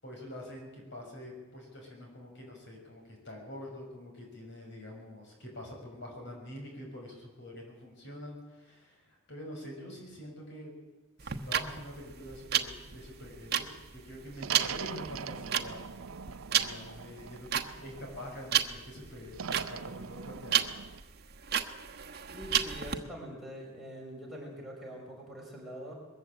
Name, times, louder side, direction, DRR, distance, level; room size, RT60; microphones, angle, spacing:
voice 1, 0.0-10.7 11.2-15.8 16.2-20.6, left 1 dB, 55° left, 0 dB, 6.3 m, -46 dB
sound 1, 11.2-23.0, right 9 dB, 50° right, 1.2 m, -32 dB
sound 2, 14.4-18.5 19.3-21.0, right 6 dB, 80° right, 0.6 m, -42 dB
voice 2, 22.2-25.9, equal, ahead, -4 dB, 5.8 m, -44 dB
21.5 x 15.0 x 8.8 m, 1.2 s
head